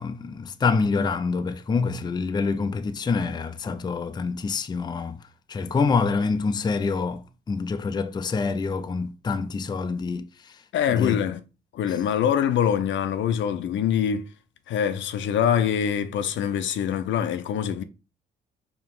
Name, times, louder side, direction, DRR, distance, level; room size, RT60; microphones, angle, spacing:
voice 1, 0.0-5.2 5.5-10.5 10.9-11.2, left 4 dB, 20° left, 0.4 m, -26 dB
voice 2, 10.7-11.4 11.7-14.3 14.7-17.8, left 9 dB, 70° left, 0.6 m, -24 dB
4.7 x 2.9 x 3.7 m
cardioid pair, 90°, 20 cm